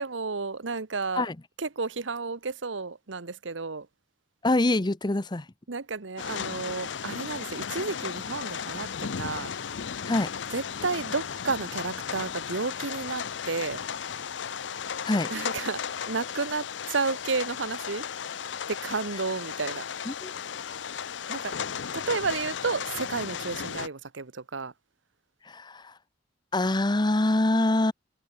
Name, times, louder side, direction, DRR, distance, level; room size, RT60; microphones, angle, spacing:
voice 1, 0.0-1.3 1.6-3.9 5.7-9.5 10.5-13.8 15.3-18.1 18.7-19.8 21.3-21.5 21.9-24.7, right 4 dB, 80° right, 1.1 m, -32 dB
voice 2, 4.4-5.5 10.1-10.3 15.0-15.3 20.1-20.3 25.4-26.0 26.5-27.9, left 2 dB, 25° left, 0.8 m, -25 dB
sound 1, 6.2-23.9, left 7 dB, 70° left, 0.6 m, -35 dB
head